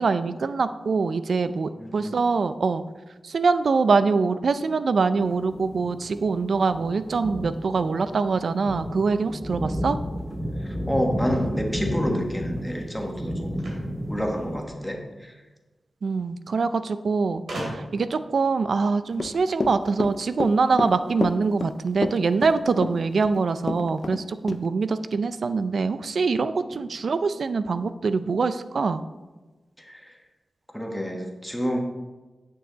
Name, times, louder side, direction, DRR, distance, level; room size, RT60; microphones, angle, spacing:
voice 1, 0.0-2.8 3.2-10.0 16.0-29.0, right 4 dB, 70° right, 12 dB, 0.4 m, -24 dB
voice 2, 1.8-2.3 10.6-13.7 14.1-15.4 29.8-30.2 30.7-31.8, equal, 5° left, 2 dB, 1.4 m, -29 dB
sound 1, 5.2-14.6, equal, 10° right, 0.9 m, -32 dB
sound 2, 13.6-15.0 16.1-16.2 16.4-16.5 17.5-18.1, right 1 dB, 85° right, 2.6 m, -36 dB
Run / Walk footsteps, 19.1-24.2 24.5-24.6, left 3 dB, 50° left, 0.4 m, -29 dB
8.8 x 6.7 x 4.0 m, 1.2 s
wide cardioid pair, 75°, 0 cm